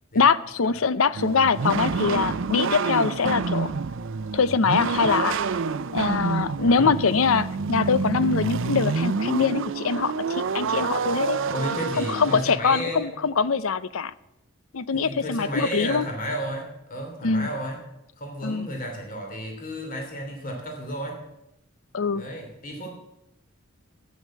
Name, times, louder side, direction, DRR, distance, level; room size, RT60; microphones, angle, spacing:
voice 1, 0.1-3.7 4.3-5.4 5.9-11.4 12.0-14.1 14.7-16.1 17.2-17.5 18.4-18.7 21.9-22.2, left 5 dB, 75° left, 16 dB, 0.6 m, -23 dB
sound 1, 1.1-12.4, right 4 dB, 65° right, 0.6 m, -27 dB
voice 2, 6.6-7.0 11.5-13.1 14.9-17.8 18.2-21.2 22.1-22.9, equal, 40° left, 2 dB, 3.0 m, -32 dB
12.5 x 9.4 x 7.4 m, 0.85 s
head